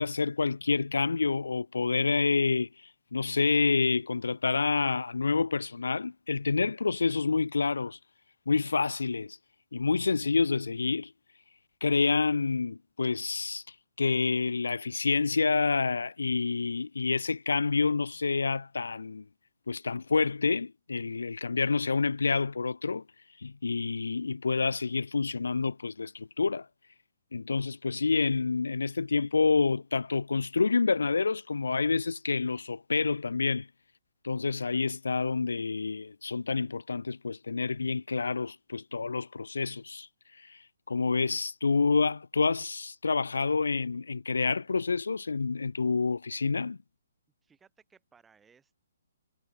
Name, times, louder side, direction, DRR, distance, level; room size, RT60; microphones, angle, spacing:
voice 1, 0.0-2.7 3.1-8.0 8.5-9.4 9.7-11.1 11.8-13.6 14.0-19.2 19.7-23.0 23.4-26.7 27.3-33.7 34.2-40.1 40.9-46.8, left 4 dB, 85° left, 0.4 m, -28 dB
voice 2, 47.4-48.8, right 6 dB, 10° right, 2.5 m, -62 dB
hypercardioid pair, 145°, 0 cm